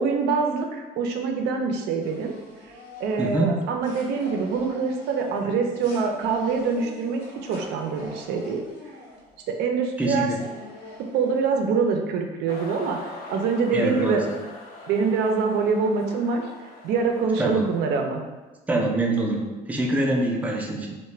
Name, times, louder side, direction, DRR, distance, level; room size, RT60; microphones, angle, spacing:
voice 1, 0.0-2.3 3.0-8.6 9.5-10.3 11.1-14.2 14.9-16.5 16.8-18.2, right 5 dB, 80° right, 3 dB, 0.4 m, -25 dB
sound 1, 2.0-9.5 10.0-10.1 10.3-11.6, left 2 dB, 85° left, 0.8 m, -45 dB
voice 2, 3.2-3.6 5.4-5.6 10.0-10.4 13.7-14.2 17.4-17.7 18.7-20.9, right 1 dB, 10° right, 0 dB, 0.4 m, -25 dB
sound 2, 12.5-18.0, left 2 dB, 65° left, 0.4 m, -42 dB
2.3 x 2.1 x 3.1 m, 1.2 s
cardioid pair, 110°, 17 cm